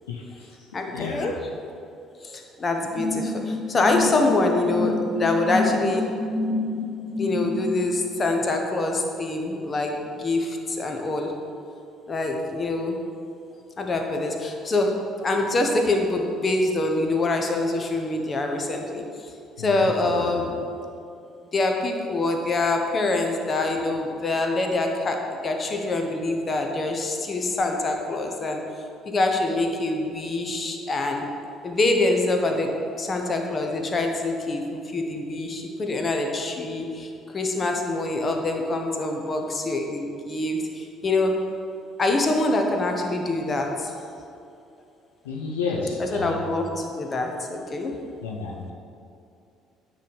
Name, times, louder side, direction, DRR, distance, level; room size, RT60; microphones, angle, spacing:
voice 1, 0.1-0.6 0.9-1.4 19.6-20.5 45.2-46.4 48.2-48.7, left 4 dB, 80° left, -2 dB, 0.5 m, -31 dB
voice 2, 0.7-1.4 2.2-6.1 7.2-11.3 12.1-13.0 13.8-14.9 15.2-19.3 19.6-20.5 21.5-28.6 29.0-31.3 31.6-32.7 33.0-41.4 42.0-43.9 46.0-48.0, left 2 dB, 35° left, 3 dB, 0.9 m, -25 dB
sound 1, 2.9-7.7, left 2 dB, 55° right, 1.2 m, -28 dB
9.0 x 3.3 x 5.2 m, 2.6 s
figure-of-eight pair, 50°, 0 cm